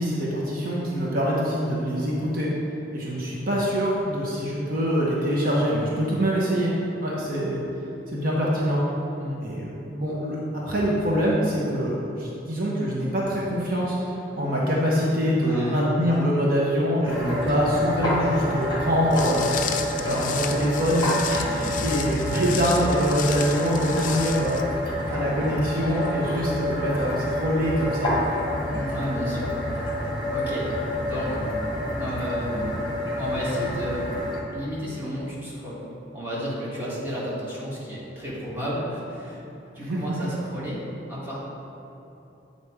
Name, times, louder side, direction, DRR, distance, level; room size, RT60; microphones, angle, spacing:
voice 1, 0.0-2.5 2.9-6.7 7.0-7.6 8.1-8.8 9.4-19.5 20.0-24.7 25.1-28.1 39.8-40.3, equal, 50° right, -5 dB, 1.0 m, -24 dB
voice 2, 15.4-15.8 28.7-29.7 30.3-30.7 31.0-31.4 32.0-32.7 33.2-34.0 34.5-35.8 36.1-39.4 39.7-40.8 41.1-41.4, equal, 10° right, -8 dB, 1.5 m, -32 dB
sound 1, 17.0-34.4, left 1 dB, 25° left, 1.3 m, -28 dB
Walk footsteps, 19.1-24.6, left 8 dB, 45° left, 0.4 m, -33 dB
8.1 x 4.1 x 4.8 m, 2.9 s
head